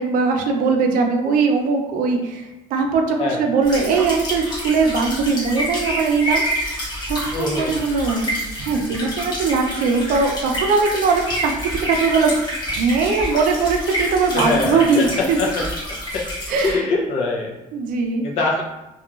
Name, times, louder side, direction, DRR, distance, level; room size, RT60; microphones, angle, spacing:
voice 1, 0.0-2.4 2.7-6.4 7.1-8.3 8.6-11.5 11.8-15.4 16.5-16.8 17.7-18.3, right 4 dB, 75° right, 3 dB, 0.4 m, -20 dB
sound 1, 3.6-16.7, equal, 30° left, 1.0 m, -28 dB
voice 2, 7.3-7.8 14.3-15.6 16.1-16.2 16.6-17.5 18.2-18.6, left 3 dB, 50° left, -2 dB, 0.4 m, -23 dB
2.8 x 2.3 x 2.3 m, 1.0 s
cardioid pair, 165°, 14 cm